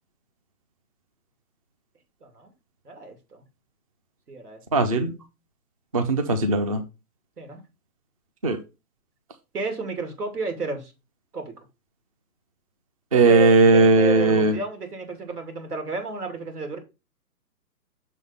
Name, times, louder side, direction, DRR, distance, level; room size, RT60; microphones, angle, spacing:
voice 1, 2.8-3.4 4.3-4.6 7.4-7.6 9.5-10.9 11.3-11.5 13.1-16.8, right 3 dB, 90° right, 2.7 m, -32 dB
voice 2, 4.7-5.1 5.9-6.8 8.4-8.6 13.1-14.5, right 3 dB, 25° right, 0.4 m, -18 dB
6.4 x 3.7 x 5.3 m
hypercardioid pair, 155°, 45 cm